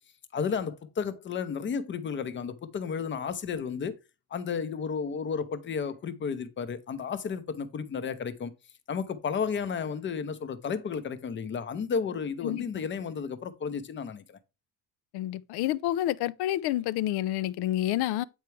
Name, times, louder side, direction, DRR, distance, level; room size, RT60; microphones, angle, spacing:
voice 1, 0.3-4.0 4.3-8.5 8.9-14.4, left 6 dB, 30° left, 0.7 m, -32 dB
voice 2, 15.1-18.2, left 14 dB, 70° left, 0.5 m, -29 dB
8.1 x 4.6 x 3.1 m
cardioid pair, 150°, 40 cm